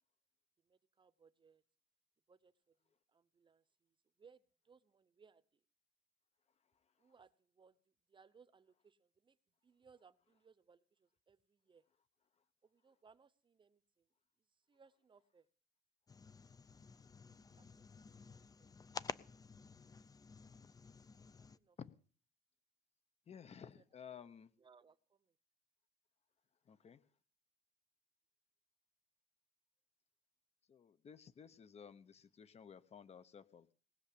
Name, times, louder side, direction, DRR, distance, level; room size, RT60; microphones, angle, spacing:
voice 1, 0.6-1.6 2.3-2.8 3.1-5.6 7.0-9.4 9.6-11.8 12.6-14.1 14.5-15.5 17.5-18.8 21.4-22.0 23.5-25.4, right 5 dB, 30° right, 16 dB, 0.9 m, -68 dB
sound 1, 16.1-21.6, left 5 dB, 20° left, 0.6 m, -51 dB
voice 2, 23.3-24.5 26.7-27.0 30.7-33.7, left 7 dB, 40° left, 14 dB, 0.9 m, -55 dB
19.0 x 6.7 x 8.5 m, 0.43 s
cardioid pair, 110°, 17 cm